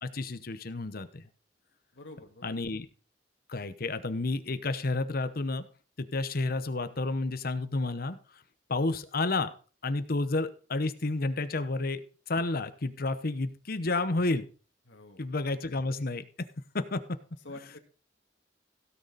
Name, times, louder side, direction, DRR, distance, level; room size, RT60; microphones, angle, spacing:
voice 1, 0.0-1.2 2.4-2.9 3.5-5.6 6.0-8.2 8.7-9.5 9.8-12.0 12.3-14.5 15.2-16.2 16.7-17.2, left 2 dB, 55° left, 11 dB, 0.9 m, -30 dB
voice 2, 1.9-2.6 14.9-15.2 17.4-17.8, left 2 dB, 85° left, 3 dB, 2.1 m, -47 dB
16.5 x 6.7 x 4.0 m, 0.39 s
head